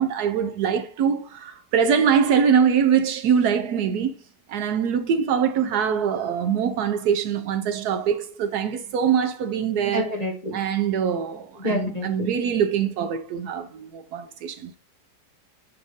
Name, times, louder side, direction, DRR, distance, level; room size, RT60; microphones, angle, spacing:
voice 1, 0.0-4.1 4.5-10.0 10.5-14.8, right 7 dB, 75° right, 1.1 m, -23 dB
voice 2, 9.8-10.6 11.5-12.3, equal, 25° left, 1.1 m, -28 dB
7.3 x 2.5 x 5.2 m
omnidirectional pair, 1.8 m